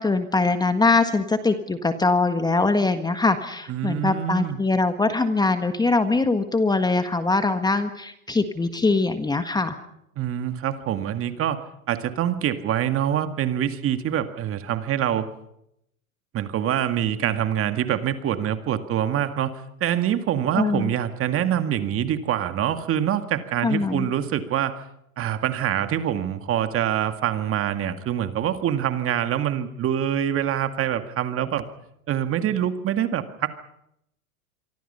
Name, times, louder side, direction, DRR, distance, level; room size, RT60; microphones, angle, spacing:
voice 1, 0.0-9.8 20.5-20.9 23.6-24.1, left 3 dB, 10° left, 9 dB, 1.6 m, -22 dB
voice 2, 3.7-4.6 10.2-15.3 16.3-19.5 19.8-24.8 25.2-31.6 32.1-33.6, right 10 dB, 30° right, 9 dB, 2.0 m, -25 dB
26.5 x 24.5 x 5.7 m, 0.77 s
hypercardioid pair, 110°, 43 cm